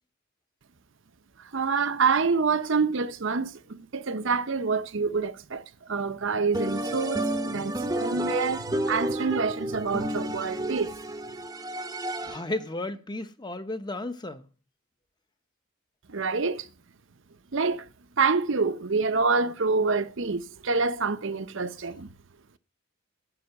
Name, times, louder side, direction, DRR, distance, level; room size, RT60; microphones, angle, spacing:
voice 1, 1.4-11.0 16.1-16.7 17.5-17.9 18.2-22.1, right 4 dB, 60° right, 0.7 m, -27 dB
sound 1, 6.5-12.6, right 1 dB, 15° right, 0.8 m, -31 dB
voice 2, 12.2-14.4, left 2 dB, 20° left, 0.8 m, -34 dB
14.5 x 5.6 x 7.9 m
head